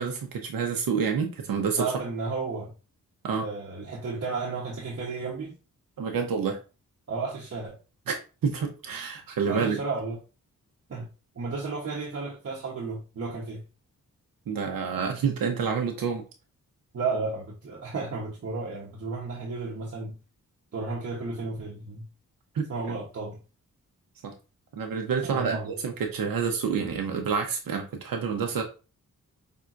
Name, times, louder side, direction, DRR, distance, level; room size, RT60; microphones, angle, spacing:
voice 1, 0.0-1.8 3.2-3.5 6.0-6.6 8.1-8.2 8.4-9.8 14.5-16.2 22.5-22.7 24.2-24.3 24.7-28.6, right 6 dB, 85° right, 0.8 m, -28 dB
voice 2, 1.8-2.7 3.4-5.5 7.1-7.8 9.5-10.2 10.9-11.1 11.3-13.6 16.9-20.1 20.7-22.0 22.7-23.4 25.2-25.7, right 4 dB, 45° right, 1.1 m, -33 dB
5.6 x 3.6 x 2.5 m
wide cardioid pair, 120°, 33 cm